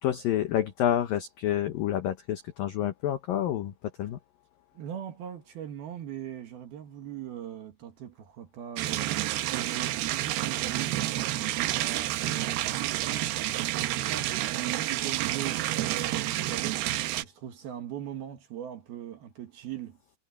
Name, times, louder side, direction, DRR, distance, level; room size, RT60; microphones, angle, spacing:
voice 1, 0.0-4.2, left 11 dB, 75° left, 2.0 m, -28 dB
voice 2, 4.7-12.8 13.3-16.8 17.2-20.0, right 10 dB, 60° right, 3.1 m, -40 dB
sound 1, 8.8-17.2, right 15 dB, 85° right, 2.3 m, -29 dB
omnidirectional pair, 5.6 m